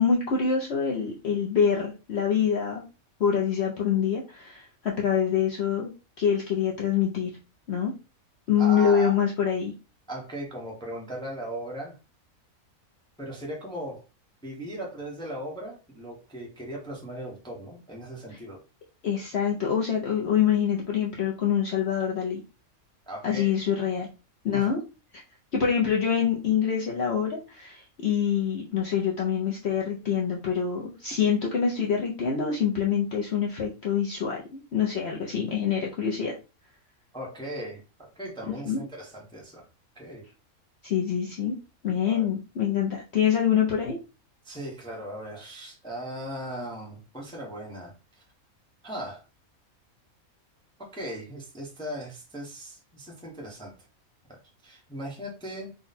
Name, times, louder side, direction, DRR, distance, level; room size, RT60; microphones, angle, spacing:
voice 1, 0.0-2.8 3.2-5.9 6.2-7.3 7.7-7.9 8.5-9.7 19.0-22.4 23.2-24.1 24.4-24.8 25.1-25.2 25.5-36.3 38.7-38.8 40.8-41.5 41.8-44.0, left 7 dB, 55° left, -2 dB, 0.9 m, -25 dB
voice 2, 8.6-9.1 10.1-12.0 13.2-14.0 14.4-18.6 23.1-23.5 24.5-24.7 37.1-39.6 39.9-40.3 42.0-42.3 44.4-48.2 48.8-49.2 50.8-53.7 54.3-55.7, right 1 dB, 5° left, -2 dB, 1.0 m, -38 dB
3.9 x 2.3 x 4.1 m, 0.31 s
omnidirectional pair, 1.5 m